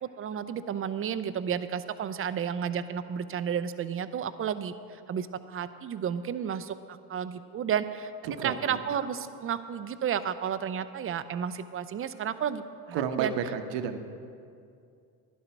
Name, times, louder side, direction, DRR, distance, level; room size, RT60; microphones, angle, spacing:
voice 1, 0.0-13.3, right 8 dB, 30° right, 13 dB, 0.6 m, -32 dB
voice 2, 8.2-8.8 12.9-14.0, right 7 dB, 60° right, 7 dB, 1.1 m, -31 dB
12.0 x 11.0 x 4.6 m, 2.4 s
hypercardioid pair, 75°, 49 cm